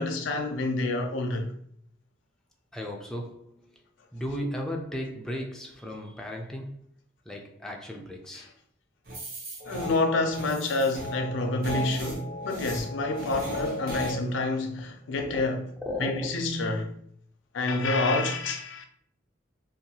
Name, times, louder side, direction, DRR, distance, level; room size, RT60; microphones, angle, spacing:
voice 1, 0.0-1.5 8.4-8.5 9.7-15.7 16.0-16.9 17.5-18.9, left 2 dB, 85° left, 0.4 m, -28 dB
voice 2, 2.7-3.7 4.1-6.8 7.3-8.5 15.2-15.4 15.8-16.3, left 1 dB, 5° left, 0.3 m, -35 dB
sound 1, 9.1-14.1, left 1 dB, 50° right, 0.7 m, -35 dB
2.7 x 2.2 x 2.7 m
head